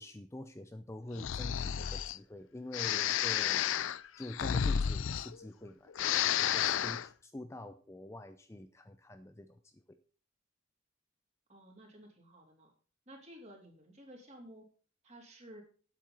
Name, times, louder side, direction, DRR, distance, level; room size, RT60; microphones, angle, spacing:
voice 1, 0.0-3.8 4.2-10.0, left 1 dB, 15° left, 8 dB, 0.5 m, -46 dB
Breathing, 1.1-2.2 2.7-5.6 5.9-7.1, left 9 dB, 70° left, 0.4 m, -32 dB
voice 2, 11.5-12.7 13.1-14.7 15.0-15.6, right 1 dB, 35° right, 0 dB, 3.3 m, -53 dB
9.1 x 8.5 x 5.4 m, 0.41 s
head